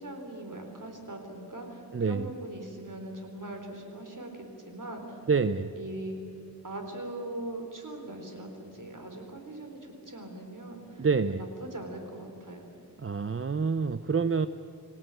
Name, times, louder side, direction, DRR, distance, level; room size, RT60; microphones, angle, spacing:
voice 1, 0.0-5.2 5.8-6.2 6.6-12.7, right 1 dB, 50° right, 4 dB, 4.3 m, -41 dB
voice 2, 1.9-2.3 5.3-5.7 11.0-11.4 13.0-14.5, right 5 dB, 35° right, 12 dB, 0.6 m, -27 dB
26.5 x 17.0 x 9.2 m, 2.6 s
wide cardioid pair, 60°, 39 cm